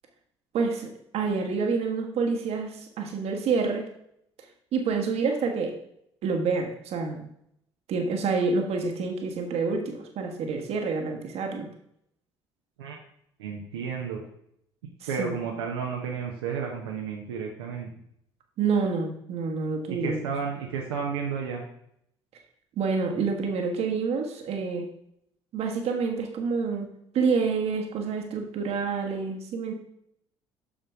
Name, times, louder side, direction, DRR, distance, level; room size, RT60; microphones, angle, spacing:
voice 1, 0.5-3.9 4.7-5.8 6.2-7.2 7.9-11.7 15.0-15.4 18.6-20.3 22.8-24.9 25.5-26.9 27.1-29.7, right 4 dB, 50° right, 4 dB, 1.3 m, -28 dB
voice 2, 13.4-14.2 15.1-17.9 19.9-21.6, right 6 dB, 70° right, -1 dB, 0.9 m, -32 dB
7.4 x 6.6 x 3.6 m, 0.72 s
figure-of-eight pair, 55°, 14 cm